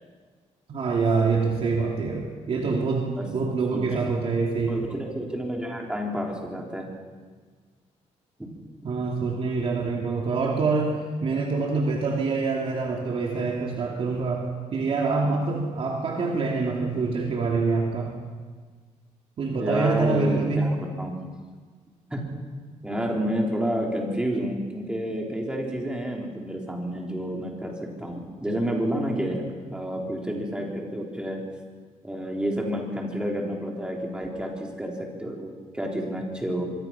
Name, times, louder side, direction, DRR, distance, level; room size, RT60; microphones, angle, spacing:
voice 1, 0.7-4.8 8.8-18.1 19.4-20.7, right 4 dB, 50° right, -1 dB, 2.8 m, -25 dB
voice 2, 3.7-4.0 4.7-6.9 19.5-21.2 22.1-22.3 22.8-31.4 32.0-36.7, equal, 5° right, 0 dB, 3.6 m, -30 dB
25.0 x 22.5 x 5.9 m, 1.5 s
cardioid pair, 155°, 13 cm